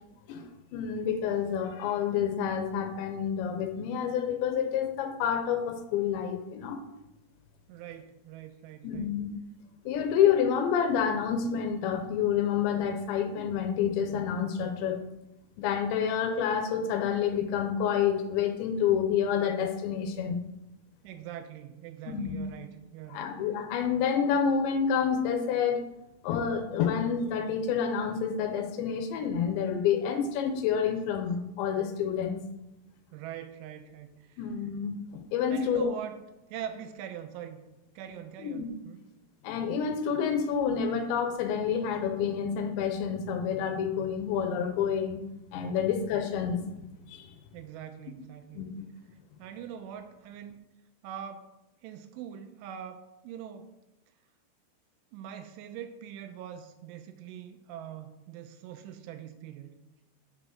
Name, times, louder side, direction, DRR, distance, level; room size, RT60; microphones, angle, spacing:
voice 1, 0.3-6.8 8.8-9.3 9.9-15.0 15.6-20.4 22.1-22.4 23.1-25.8 26.2-32.4 34.4-35.9 38.4-38.7 39.4-45.2 45.5-46.7 47.1-47.3 48.5-48.9, left 7 dB, 80° left, 6 dB, 2.7 m, -28 dB
voice 2, 7.7-9.1 21.0-23.3 33.1-34.4 35.5-36.2 36.5-37.6 38.0-39.0 47.5-48.7 49.4-50.6 51.0-51.5 51.8-53.7 55.1-59.8, right 10 dB, 85° right, 8 dB, 3.0 m, -42 dB
7.7 x 6.0 x 7.7 m, 0.95 s
omnidirectional pair, 5.9 m